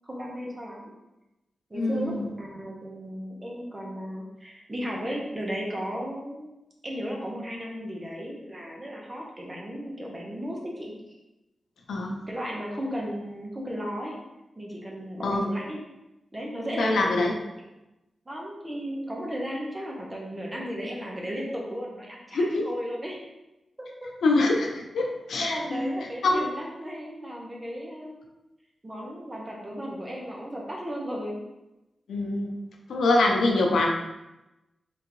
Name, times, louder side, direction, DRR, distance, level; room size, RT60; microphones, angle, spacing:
voice 1, 0.0-0.9 1.7-6.5 6.8-10.9 12.3-14.2 14.6-15.8 16.3-17.1 18.3-23.3 23.8-23.9 25.4-28.3 28.8-31.4, equal, 20° right, -3 dB, 1.1 m, -35 dB
voice 2, 1.7-2.2 11.9-12.1 15.2-15.4 16.8-17.3 22.3-22.6 24.2-25.9 26.2-26.5 32.1-32.5 32.9-33.9, left 2 dB, 90° left, 1 dB, 0.6 m, -24 dB
3.8 x 3.5 x 3.1 m, 0.97 s
cardioid pair, 85°, 0 cm